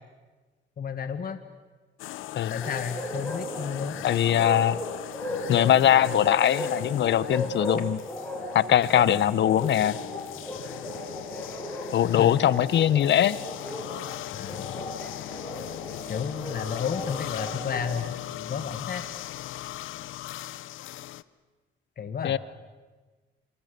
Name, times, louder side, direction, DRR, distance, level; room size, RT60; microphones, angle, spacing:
voice 1, 0.8-1.4 2.5-4.0 12.2-12.3 14.3-14.8 16.1-18.1 18.5-19.0 22.0-22.4, left 6 dB, 50° left, 8 dB, 1.7 m, -32 dB
sound 1, 2.0-21.2, left 14 dB, 85° left, 0.8 m, -39 dB
Bark, 2.6-17.9, equal, 5° left, 6.7 m, -36 dB
voice 2, 4.0-4.8 5.5-8.0 8.5-10.0 11.9-13.4 22.2-22.4, left 10 dB, 65° left, 18 dB, 1.0 m, -21 dB
27.0 x 26.5 x 6.8 m, 1.3 s
cardioid pair, 90°, 20 cm